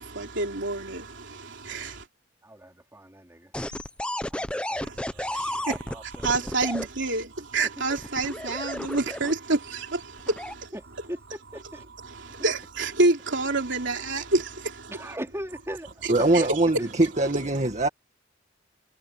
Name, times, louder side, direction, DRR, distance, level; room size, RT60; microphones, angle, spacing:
voice 1, 0.0-2.0 4.8-10.7 12.1-14.9, right 2 dB, 65° right, 3.5 m, -28 dB
voice 2, 2.4-3.5 4.3-6.7 7.6-7.9 10.7-11.9 12.4-12.5 14.9-16.5 16.8-16.9, right 1 dB, 15° right, 4.4 m, -40 dB
sound 1, 3.5-6.9 7.9-9.5 10.2-10.5, left 1 dB, 5° left, 0.8 m, -32 dB
voice 3, 16.1-17.9, right 2 dB, 35° right, 2.1 m, -22 dB
head